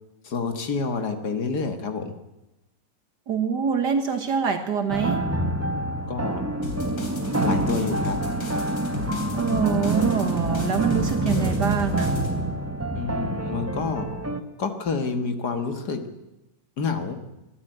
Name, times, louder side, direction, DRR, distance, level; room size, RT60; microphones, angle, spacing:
voice 1, 0.2-2.1 6.1-6.5 7.3-8.2 13.0-14.1 14.6-16.0 16.8-17.2, left 5 dB, 60° left, 7 dB, 2.1 m, -28 dB
voice 2, 3.3-5.2 9.3-12.2, right 6 dB, 65° right, 7 dB, 1.8 m, -25 dB
sound 1, 4.9-14.4, right 1 dB, 10° right, 0.8 m, -26 dB
sound 2, 6.6-12.3, left 2 dB, 75° left, 4.1 m, -35 dB
23.0 x 12.5 x 9.1 m, 0.97 s
omnidirectional pair, 2.1 m